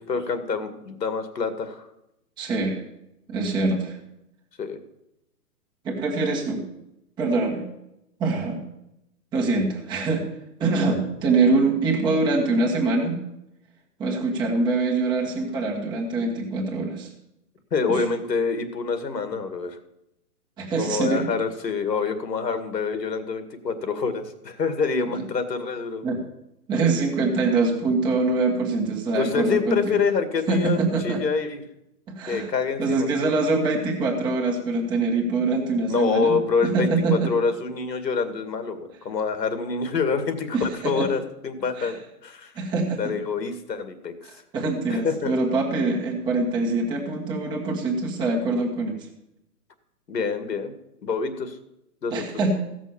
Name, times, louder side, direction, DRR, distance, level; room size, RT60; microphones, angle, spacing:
voice 1, 0.0-1.9 4.6-4.8 17.7-19.8 20.8-26.1 29.1-31.6 32.3-33.1 35.9-42.5 43.0-44.1 44.9-45.3 50.1-50.7 51.0-51.6 52.0-52.2, left 5 dB, 90° left, 9 dB, 2.2 m, -26 dB
voice 2, 2.4-2.8 3.3-4.0 5.8-6.6 7.2-7.6 8.2-8.6 9.3-10.2 10.6-13.2 14.0-17.1 17.9-18.0 20.6-21.3 25.1-25.2 26.0-26.2 26.7-29.9 30.5-31.2 32.2-32.5 32.8-36.3 36.6-37.3 40.5-41.1 41.8-41.9 42.5-43.1 44.5-49.1 52.1-52.5, right 3 dB, 10° right, -1 dB, 1.3 m, -24 dB
15.5 x 6.3 x 7.1 m, 0.85 s
hypercardioid pair, 160°, 48 cm